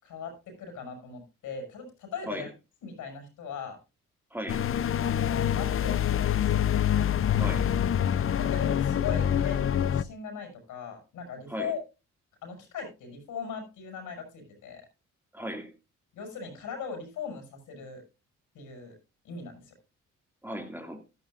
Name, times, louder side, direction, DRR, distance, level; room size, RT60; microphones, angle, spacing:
voice 1, 0.0-2.5 2.8-3.8 5.0-6.7 8.4-11.8 12.4-14.8 16.1-18.0 18.5-18.9 19.2-19.7, left 6 dB, 85° left, 6.6 m, -39 dB
voice 2, 4.3-4.6 7.3-7.7 11.5-11.7 15.3-15.7 20.4-21.0, equal, 5° right, 2.4 m, -37 dB
sound 1, 4.5-10.0, left 9 dB, 45° left, 0.7 m, -26 dB
15.5 x 11.5 x 2.6 m
cardioid pair, 90°, 30 cm